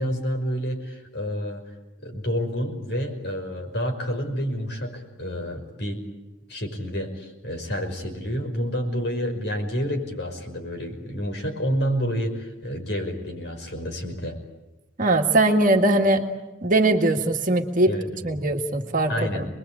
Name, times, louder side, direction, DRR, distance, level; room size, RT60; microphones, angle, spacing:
voice 1, 0.0-1.6 2.0-6.0 6.5-14.4 17.9-18.1 19.1-19.5, equal, 55° left, 4 dB, 5.7 m, -29 dB
voice 2, 15.0-16.2 16.6-17.9 18.2-19.5, right 2 dB, 40° right, 3 dB, 1.9 m, -20 dB
27.5 x 21.5 x 8.8 m, 1.0 s
head